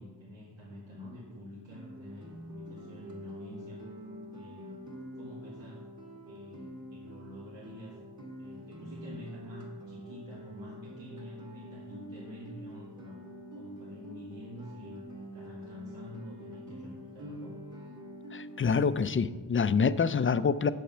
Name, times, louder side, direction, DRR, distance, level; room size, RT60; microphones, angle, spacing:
voice 1, 0.0-3.8 4.3-4.9 5.1-5.9 6.2-13.2 13.5-17.6, left 1 dB, 85° right, -7 dB, 2.2 m, -48 dB
Guitar, 1.7-19.1, equal, 40° right, 2.0 m, -46 dB
voice 2, 18.3-20.7, left 5 dB, 30° left, 14 dB, 0.4 m, -26 dB
8.5 x 7.8 x 5.6 m, 1.3 s
wide cardioid pair, 95°, 44 cm